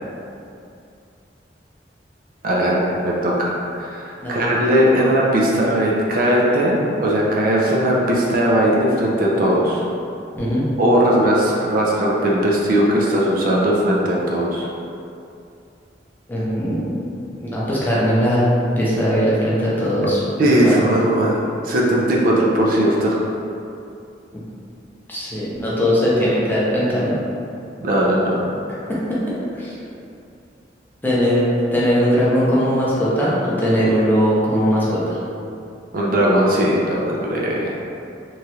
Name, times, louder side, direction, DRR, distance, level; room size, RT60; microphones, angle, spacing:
voice 1, 2.4-9.8 10.8-14.7 20.4-23.3 27.8-28.5 35.9-37.7, right 1 dB, 50° right, -3 dB, 0.4 m, -18 dB
voice 2, 16.3-16.9 17.4-18.5 18.8-20.8 25.1-27.2 28.9-29.7 31.0-31.4 31.7-35.2, equal, 10° left, -8 dB, 0.5 m, -20 dB
3.0 x 2.3 x 2.8 m, 2.6 s
head